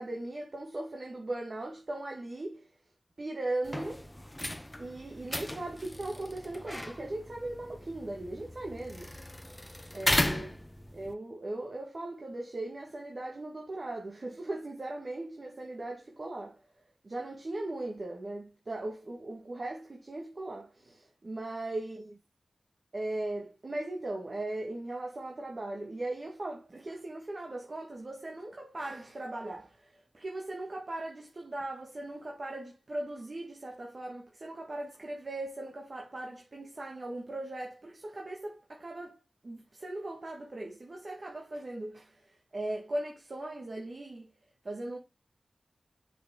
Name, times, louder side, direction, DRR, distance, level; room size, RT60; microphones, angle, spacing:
voice 1, 0.0-2.7 3.2-4.1 4.8-9.1 9.9-10.6 10.9-16.6 17.0-22.2 22.9-44.3 44.6-45.0, right 2 dB, 55° right, 1.7 m, -38 dB
sound 1, 3.6-11.1, left 1 dB, 15° left, 0.9 m, -36 dB
6.5 x 5.6 x 3.8 m
wide cardioid pair, 55°, 0 cm